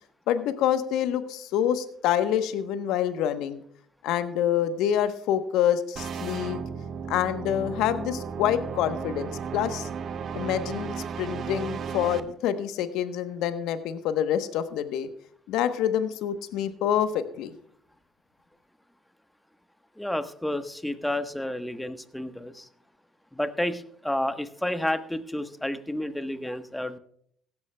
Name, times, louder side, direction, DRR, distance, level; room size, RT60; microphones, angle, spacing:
voice 1, 0.3-3.6 4.0-6.6 7.1-9.9 10.3-10.9 11.2-15.1 15.5-17.5, left 10 dB, 75° left, 11 dB, 1.0 m, -26 dB
sound 1, 6.0-12.2, right 6 dB, 55° right, 0.8 m, -34 dB
voice 2, 20.0-22.7 23.3-27.0, left 1 dB, 5° left, 10 dB, 1.2 m, -30 dB
16.5 x 12.5 x 2.3 m, 0.64 s
hypercardioid pair, 60°, 0 cm